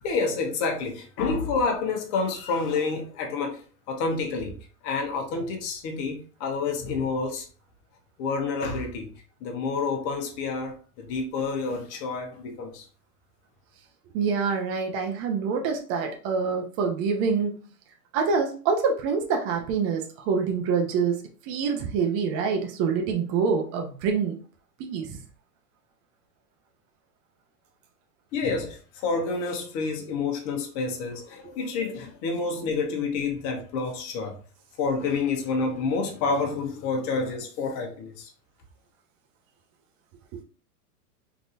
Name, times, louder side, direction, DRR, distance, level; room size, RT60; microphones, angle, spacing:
voice 1, 0.0-3.6 3.9-4.5 4.8-7.5 8.2-9.1 9.4-12.8 28.3-34.4 34.8-38.3, left 4 dB, 40° left, 1.1 m, -28 dB
voice 2, 14.1-17.6 18.1-24.4 24.8-25.2 40.3-40.4, right 5 dB, 30° right, 0.6 m, -26 dB
3.6 x 2.8 x 2.5 m
hypercardioid pair, 125°, 47 cm